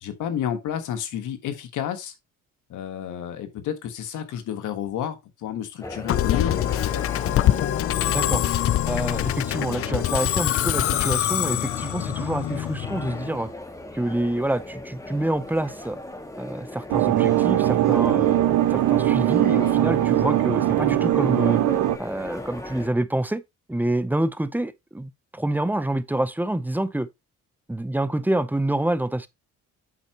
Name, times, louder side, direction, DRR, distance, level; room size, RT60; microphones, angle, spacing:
voice 1, 0.0-2.1 2.7-6.6 6.9-7.0, left 9 dB, 80° left, 1.5 m, -30 dB
sound 1, 5.8-22.9, left 1 dB, 10° left, 1.5 m, -38 dB
Musical instrument, 6.1-13.4, left 12 dB, 50° left, 0.4 m, -24 dB
voice 2, 8.1-8.4 8.9-13.5 13.9-16.0 16.4-18.4 18.7-21.6 22.0-23.4 23.7-27.1 27.7-29.3, right 1 dB, 5° right, 0.7 m, -27 dB
sound 2, 16.9-22.0, right 13 dB, 70° right, 0.7 m, -20 dB
8.4 x 5.6 x 2.9 m
cardioid pair, 90°, 30 cm